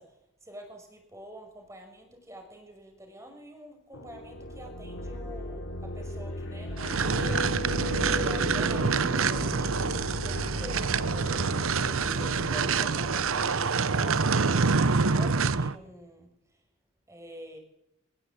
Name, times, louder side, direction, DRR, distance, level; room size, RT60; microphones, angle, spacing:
voice 1, 0.0-7.6 8.0-16.6 17.1-17.6, equal, 15° right, 4 dB, 5.9 m, -47 dB
sound 1, 3.9-14.1, left 1 dB, 65° left, 3.0 m, -36 dB
sound 2, 6.8-15.8, right 4 dB, 75° right, 0.9 m, -26 dB
24.0 x 20.0 x 8.6 m, 0.83 s
head